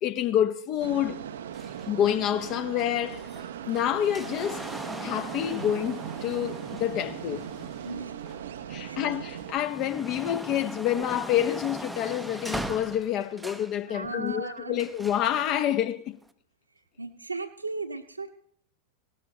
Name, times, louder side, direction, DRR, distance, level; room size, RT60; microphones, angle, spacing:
voice 1, 0.0-1.2 1.9-3.2 3.6-4.6 5.0-7.5 8.7-16.2, left 11 dB, 35° left, 1.1 m, -28 dB
sound 1, 0.8-9.5, right 9 dB, 60° right, 0.7 m, -39 dB
sound 2, 1.5-8.7 9.2-13.8 14.8-15.3 16.2-16.3, right 1 dB, ahead, 0.8 m, -40 dB
voice 2, 7.8-8.2 8.8-9.1 13.9-14.8 17.0-18.3, right 3 dB, 80° right, 1.2 m, -36 dB
18.0 x 12.5 x 3.0 m
figure-of-eight pair, 90°, 0 cm